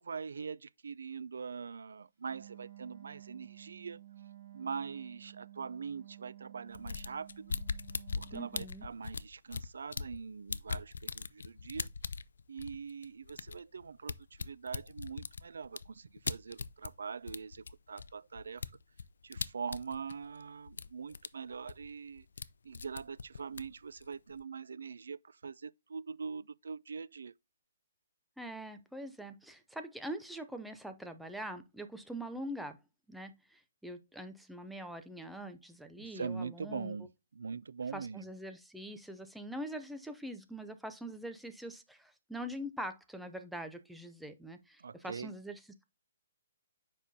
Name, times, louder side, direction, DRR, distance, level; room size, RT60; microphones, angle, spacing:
voice 1, 0.0-4.0 4.5-7.6 8.2-11.9 12.5-18.7 19.2-22.3 22.6-27.3 36.0-37.1 37.3-38.2 44.8-45.3, right 5 dB, 80° right, 0.4 m, -43 dB
Wind instrument woodwind instrument, 2.2-8.7, right 13 dB, 30° right, 2.9 m, -53 dB
sound 1, 6.7-10.2 10.5-17.0 17.3-20.4 20.7-21.3 21.5-22.5 22.7-24.4, left 5 dB, 80° left, 0.4 m, -40 dB
voice 2, 8.3-8.9 28.4-32.8 33.1-37.0 37.9-45.8, right 1 dB, ahead, 0.4 m, -43 dB
7.2 x 5.4 x 2.7 m
hypercardioid pair, 170°, 0 cm